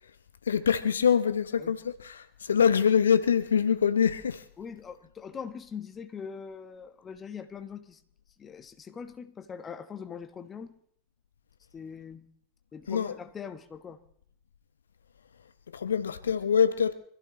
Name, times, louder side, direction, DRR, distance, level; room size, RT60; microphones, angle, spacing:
voice 1, 0.5-4.4 12.9-13.1 15.7-16.9, left 7 dB, 70° left, 0.9 m, -24 dB
voice 2, 4.6-8.0 8.4-10.8 11.7-12.3 12.7-14.0, left 6 dB, 20° left, 1.3 m, -42 dB
25.0 x 14.5 x 3.1 m
figure-of-eight pair, 90°, 0 cm